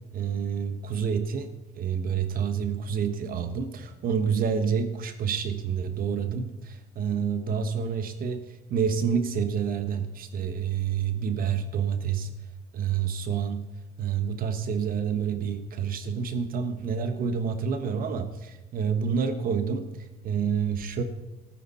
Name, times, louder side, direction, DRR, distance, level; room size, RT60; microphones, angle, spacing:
voice 1, 0.1-12.3 12.7-13.6 14.0-21.0, right 7 dB, 60° right, 9 dB, 1.3 m, -28 dB
14.0 x 13.5 x 4.3 m, 1.1 s
cardioid pair, 110°, 17 cm